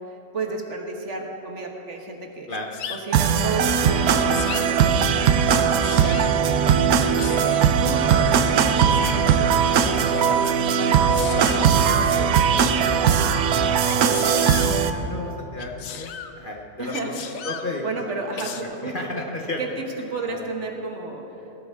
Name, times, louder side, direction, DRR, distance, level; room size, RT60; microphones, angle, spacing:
voice 1, 0.0-2.5 2.9-5.3 5.6-7.4 7.8-10.4 10.8-13.9 16.8-17.1 17.8-19.2 19.6-21.2, right 3 dB, 50° right, 2 dB, 1.5 m, -33 dB
Sneeze, 2.5-3.0 4.0-4.7 5.5-6.3 7.2-7.7 8.7-9.2 9.9-10.4 11.1-11.7 13.9-14.7 15.6-16.3 16.9-17.7 18.4-18.6, left 8 dB, 65° left, 1.1 m, -35 dB
sound 1, 3.1-14.9, right 7 dB, 75° right, 1.1 m, -19 dB
voice 2, 14.7-17.9 18.3-18.6 18.8-19.6 20.3-20.5, left 2 dB, 40° left, 0 dB, 0.9 m, -33 dB
18.0 x 12.5 x 3.6 m, 2.9 s
omnidirectional pair, 1.6 m